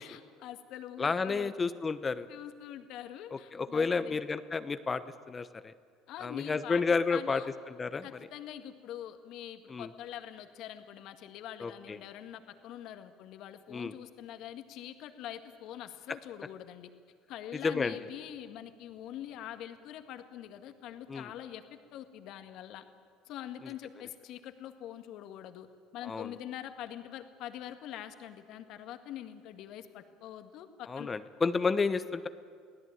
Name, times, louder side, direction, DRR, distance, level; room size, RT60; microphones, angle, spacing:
voice 1, 0.0-1.6 2.3-4.2 6.1-6.8 7.1-7.5 8.0-16.9 17.3-22.8 23.3-25.7 25.9-31.1, left 11 dB, 65° left, 8 dB, 1.8 m, -44 dB
voice 2, 1.0-2.3 3.3-5.0 5.3-5.7 6.2-7.4 7.7-8.0 9.7-9.9 11.6-12.0 13.7-13.9 17.6-18.0 21.1-21.3 26.0-26.3 30.9-32.3, left 4 dB, 25° left, 12 dB, 1.0 m, -31 dB
24.0 x 16.5 x 9.1 m, 2.1 s
hypercardioid pair, 80°, 0 cm